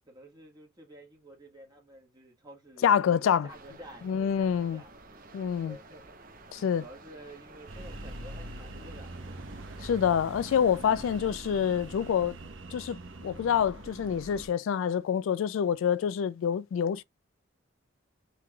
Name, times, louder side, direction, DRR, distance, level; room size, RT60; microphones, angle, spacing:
voice 1, 0.1-4.9 5.6-6.1 6.8-9.5, right 1 dB, 20° right, 1.6 m, -51 dB
voice 2, 2.8-3.5 4.0-4.8 5.3-5.8 6.5-6.8 9.8-12.4 12.7-13.0 13.2-17.0, left 8 dB, 80° left, 0.3 m, -26 dB
sound 1, 3.5-10.1, right 2 dB, 45° right, 0.8 m, -52 dB
sound 2, 7.7-14.5, right 1 dB, 75° right, 1.0 m, -43 dB
5.8 x 3.2 x 2.3 m
head